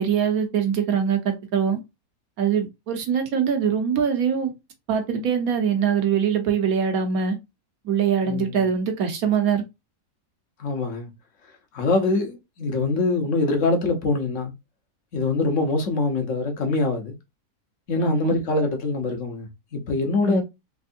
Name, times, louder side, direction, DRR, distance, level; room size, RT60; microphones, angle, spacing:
voice 1, 0.0-1.8 2.4-4.5 4.9-7.3 7.8-9.6 18.0-18.3 20.2-20.4, right 7 dB, 65° right, 1.3 m, -23 dB
voice 2, 8.3-8.7 10.6-11.1 11.7-14.5 15.1-17.1 17.9-20.4, left 3 dB, 55° left, 1.2 m, -24 dB
3.6 x 3.2 x 2.5 m
omnidirectional pair, 1.7 m